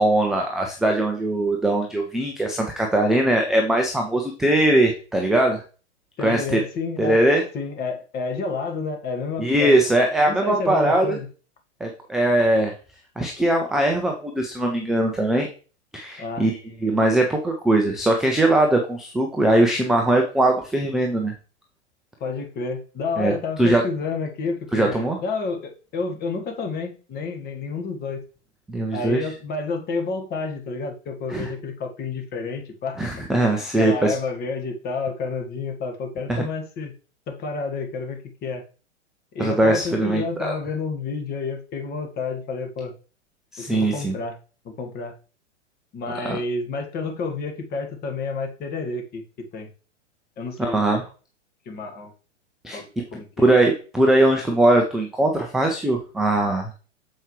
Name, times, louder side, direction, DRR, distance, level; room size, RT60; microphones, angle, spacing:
voice 1, 0.0-5.6 6.2-6.6 7.0-7.4 9.4-11.2 11.8-12.7 13.2-15.5 15.9-21.3 23.2-23.3 23.6-23.8 24.7-25.2 28.7-29.2 31.3-31.5 33.0-34.1 36.3-36.4 39.4-40.5 43.5-44.2 46.2-46.4 50.6-51.0 52.6-52.8 53.4-56.7, right 1 dB, ahead, 2 dB, 0.3 m, -20 dB
voice 2, 6.2-7.2 7.5-9.7 10.3-11.3 16.2-16.5 22.2-28.2 28.9-33.0 33.8-36.9 37.3-38.6 39.3-42.9 43.6-44.4 44.6-45.1 45.9-49.7 50.4-50.8 51.6-52.1 52.7-53.5, left 4 dB, 25° left, 4 dB, 1.5 m, -30 dB
7.2 x 4.6 x 3.1 m, 0.36 s
figure-of-eight pair, 105°, 36 cm